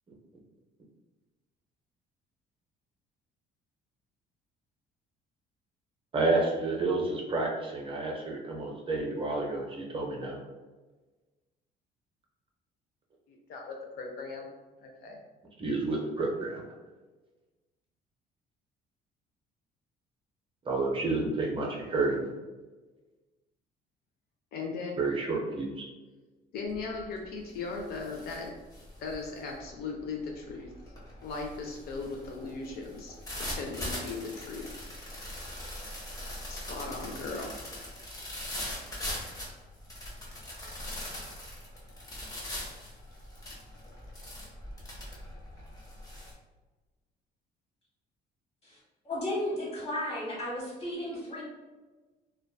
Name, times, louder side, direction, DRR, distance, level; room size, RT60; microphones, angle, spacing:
voice 1, 6.1-10.4 15.6-16.6 20.7-22.3 25.0-25.9, right 3 dB, 30° right, -1 dB, 0.5 m, -30 dB
voice 2, 13.3-14.5 14.8-15.2 24.5-24.9 26.5-28.5 29.0-30.7 31.2-34.7 36.5-37.5, left 4 dB, 65° left, 1 dB, 0.4 m, -38 dB
sound 1, 26.7-27.0 27.4-46.3, left 1 dB, 20° left, 0.7 m, -41 dB
voice 3, 49.0-51.4, left 1 dB, 35° left, -5 dB, 1.1 m, -34 dB
2.5 x 2.2 x 2.2 m, 1.2 s
cardioid pair, 110°, 17 cm